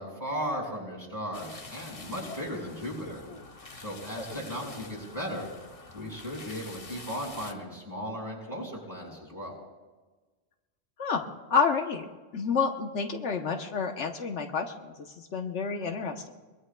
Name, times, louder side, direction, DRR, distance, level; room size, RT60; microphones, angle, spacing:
voice 1, 0.0-3.2 3.8-5.5 5.9-9.6, equal, 15° right, -4 dB, 5.3 m, -36 dB
sound 1, 1.3-7.5, left 3 dB, 30° left, 0.9 m, -46 dB
voice 2, 11.0-12.0 12.3-16.3, left 5 dB, 75° left, 4 dB, 1.3 m, -29 dB
23.0 x 21.5 x 2.3 m, 1.3 s
omnidirectional pair, 1.2 m